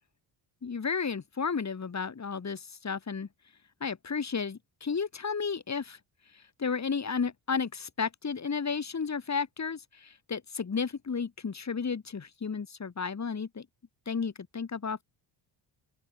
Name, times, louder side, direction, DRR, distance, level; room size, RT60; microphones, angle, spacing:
voice 1, 0.6-3.3 3.8-6.0 6.6-13.7 14.1-15.0, left 5 dB, 35° left, 7.2 m, -33 dB
open air
cardioid pair, 115°, 46 cm